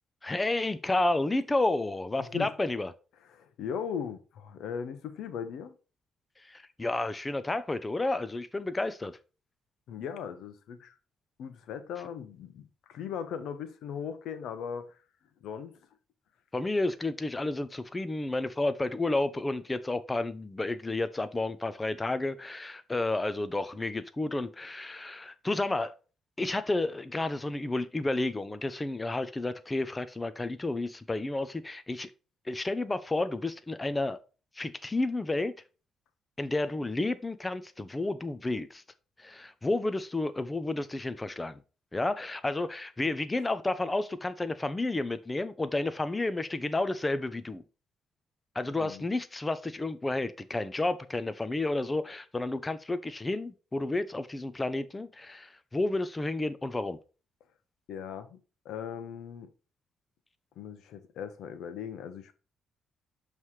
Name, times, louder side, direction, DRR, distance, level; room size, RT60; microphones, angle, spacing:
voice 1, 0.2-2.9 6.4-9.1 16.5-25.9 26.4-32.1 32.5-34.2 34.6-35.5 36.4-38.8 39.2-41.6 41.9-47.6 48.5-57.0, left 2 dB, 20° left, 0.5 m, -31 dB
voice 2, 2.2-2.5 3.3-5.8 9.9-11.0 11.4-15.0 15.4-15.7 48.6-49.0 57.9-58.4 58.6-59.5 60.6-62.3, left 7 dB, 80° left, 0.8 m, -38 dB
7.2 x 3.2 x 4.7 m
cardioid pair, 90°, 0 cm